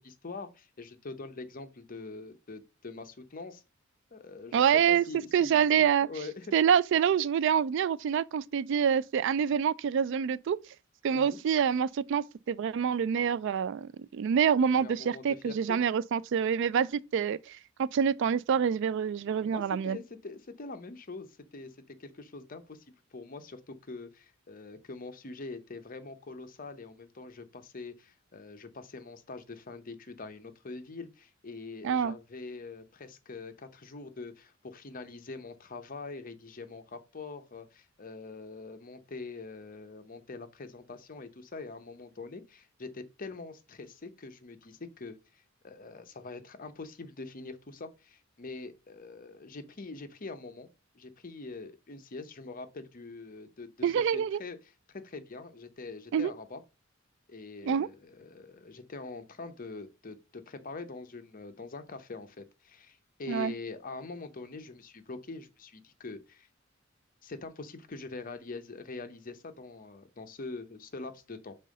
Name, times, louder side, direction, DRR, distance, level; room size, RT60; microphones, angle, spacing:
voice 1, 0.0-3.6 4.1-6.5 11.1-11.4 14.8-15.8 19.4-22.8 23.1-50.7 50.9-54.6 54.9-56.6 57.3-66.5 67.2-71.6, left 3 dB, 45° left, 0.8 m, -44 dB
voice 2, 4.5-5.0 5.3-6.1 6.5-10.6 11.0-20.0 31.8-32.1 53.8-54.4 56.1-56.3 57.6-57.9 63.3-63.5, right 7 dB, 65° right, 0.3 m, -26 dB
5.5 x 3.7 x 5.2 m
head